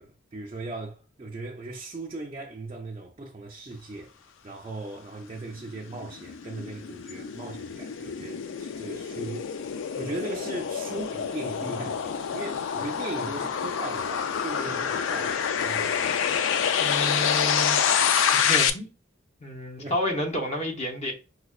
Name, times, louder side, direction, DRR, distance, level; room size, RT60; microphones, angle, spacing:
voice 1, 0.0-4.1 4.4-9.6 10.0-16.3 16.5-16.7 19.8-20.0, right 2 dB, 30° right, 0.4 m, -38 dB
sound 1, 5.5-18.7, left 7 dB, 70° left, 0.3 m, -27 dB
voice 2, 16.8-17.9 18.3-18.9 19.4-21.1, equal, 35° left, 0.8 m, -30 dB
5.0 x 2.1 x 2.3 m
head